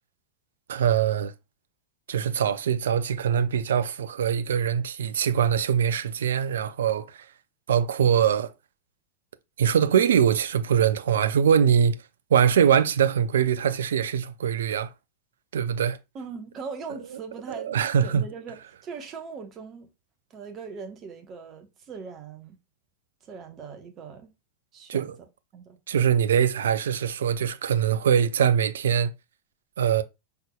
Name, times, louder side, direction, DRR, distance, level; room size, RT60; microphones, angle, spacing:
voice 1, 0.7-1.3 2.1-7.2 7.7-8.5 9.6-12.0 12.3-14.9 15.5-16.0 17.5-18.2 24.9-25.1 25.9-29.1 29.8-30.0, right 8 dB, 65° right, 0.5 m, -23 dB
voice 2, 16.1-17.7 18.0-19.9 20.3-22.6 23.2-24.3 24.7-25.1 25.5-25.8, right 5 dB, 30° right, 1.1 m, -40 dB
5.6 x 3.5 x 2.3 m
figure-of-eight pair, 90°, 0 cm